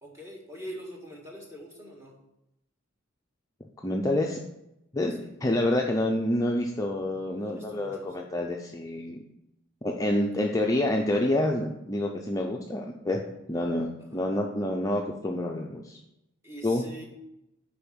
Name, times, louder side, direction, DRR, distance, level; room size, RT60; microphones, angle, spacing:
voice 1, 0.0-2.2 5.1-5.3 7.4-8.2 10.4-10.5 14.0-14.2 16.4-17.0, right 1 dB, 15° right, -1 dB, 1.8 m, -44 dB
voice 2, 3.8-4.4 4.9-9.2 9.8-13.2 13.5-16.0 16.6-16.8, left 1 dB, 15° left, 0 dB, 0.5 m, -28 dB
6.8 x 4.9 x 6.1 m, 0.88 s
head